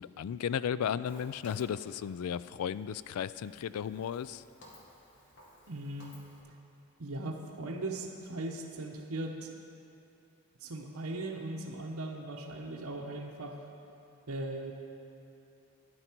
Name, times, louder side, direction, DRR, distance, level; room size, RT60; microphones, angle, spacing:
voice 1, 0.0-4.4, left 8 dB, 80° left, 16 dB, 0.3 m, -34 dB
Walk footsteps, 1.0-6.4, left 1 dB, 55° left, 1.8 m, -57 dB
voice 2, 5.7-6.2 7.0-9.5 10.6-13.6 14.3-14.7, right 2 dB, 75° right, 2 dB, 0.9 m, -38 dB
12.0 x 10.5 x 4.5 m, 2.8 s
head